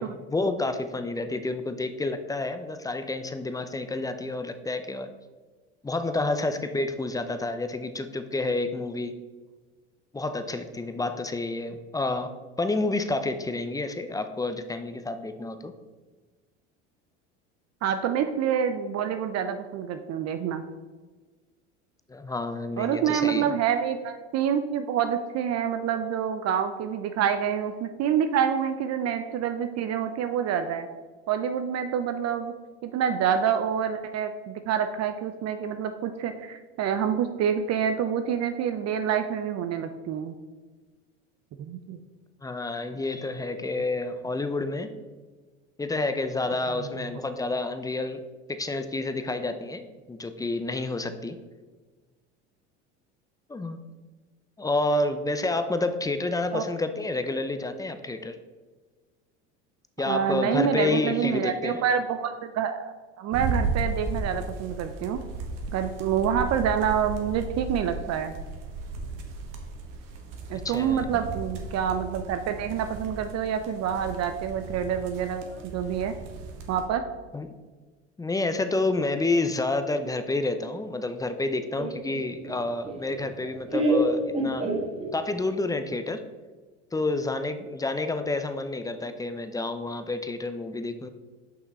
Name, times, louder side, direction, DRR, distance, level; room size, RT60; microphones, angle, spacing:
voice 1, 0.0-5.1 5.8-9.2 10.1-12.3 12.6-15.7 22.1-23.5 42.4-44.9 45.8-48.2 48.5-51.4 53.5-53.8 54.6-58.4 60.0-61.8 70.6-71.2 75.5-75.7 77.3-77.6 78.2-84.7 85.1-86.2 86.9-91.1, left 2 dB, 10° left, 9 dB, 0.5 m, -29 dB
voice 2, 17.8-20.6 22.8-30.9 31.3-32.5 32.8-40.3 41.6-42.0 56.5-56.6 60.1-65.2 65.7-68.3 70.5-76.1 76.7-77.0, right 8 dB, 45° right, 8 dB, 0.6 m, -27 dB
sound 1, 63.3-76.8, right 3 dB, 65° right, 1.4 m, -35 dB
Laughter, 81.8-85.4, right 1 dB, 15° right, 1.5 m, -28 dB
5.8 x 5.7 x 4.1 m, 1.3 s
hypercardioid pair, 85°, 36 cm